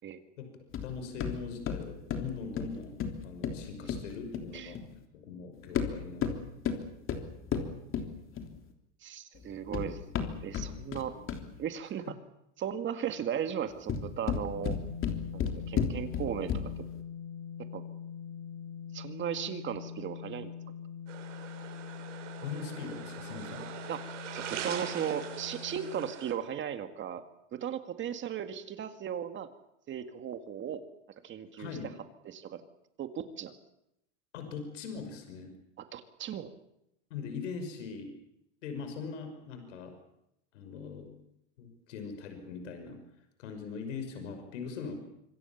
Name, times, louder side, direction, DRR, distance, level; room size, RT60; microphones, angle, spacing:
sound 1, 0.7-4.9 5.6-8.7 9.4-11.6 13.7-16.9, left 7 dB, 35° left, 3.4 m, -34 dB
voice 1, 0.8-4.8 5.1-6.3 22.4-23.6 31.5-31.9 34.3-35.5 37.1-38.1 38.6-40.0 40.5-41.1 41.6-43.0 43.4-45.0, left 5 dB, 80° left, 7 dB, 5.8 m, -41 dB
voice 2, 9.0-10.0 10.4-11.1 11.6-12.2 12.6-14.8 15.3-16.7 17.7-17.8 18.9-20.5 23.9-24.0 24.3-27.2 27.5-29.5 29.9-30.8 31.2-31.7 32.3-32.6 33.0-33.5 35.8-36.5, right 9 dB, 30° right, 8 dB, 2.0 m, -36 dB
sound 2, 14.5-26.1, left 8 dB, 60° left, 3.4 m, -43 dB
sound 3, 21.1-26.3, right 8 dB, 90° right, 6.9 m, -42 dB
26.0 x 23.5 x 7.2 m, 0.81 s
supercardioid pair, 125°, 36 cm